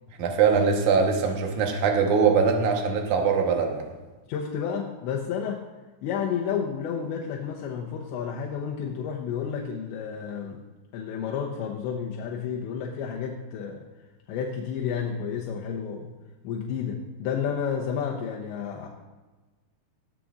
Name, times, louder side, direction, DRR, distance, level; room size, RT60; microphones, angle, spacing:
voice 1, 0.2-3.8, right 5 dB, 70° right, 2 dB, 1.8 m, -22 dB
voice 2, 4.3-5.7 6.0-10.6 10.9-13.8 14.3-16.1 16.4-18.9, left 7 dB, 80° left, -1 dB, 3.1 m, -31 dB
18.0 x 14.0 x 2.5 m, 1.2 s
omnidirectional pair, 5.4 m